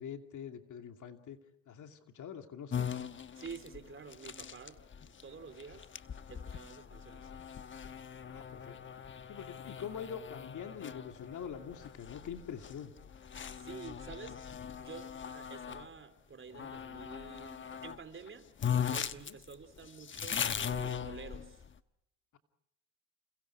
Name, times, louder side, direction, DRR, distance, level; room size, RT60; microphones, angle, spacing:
voice 1, 0.0-1.4 1.7-2.9 8.3-8.8 9.3-12.9 19.2-19.4, left 8 dB, 50° left, 5 dB, 2.7 m, -44 dB
sound 1, 2.7-15.9 16.5-18.0 18.3-18.4 18.6-21.7, left 8 dB, 30° left, 1.1 m, -40 dB
voice 2, 3.4-4.8 5.0-5.9 6.3-7.3 13.5-14.4 14.8-18.5 18.8-21.6, right 5 dB, 30° right, 9 dB, 3.5 m, -49 dB
29.5 x 29.0 x 4.8 m, 0.80 s
supercardioid pair, 90°, 38 cm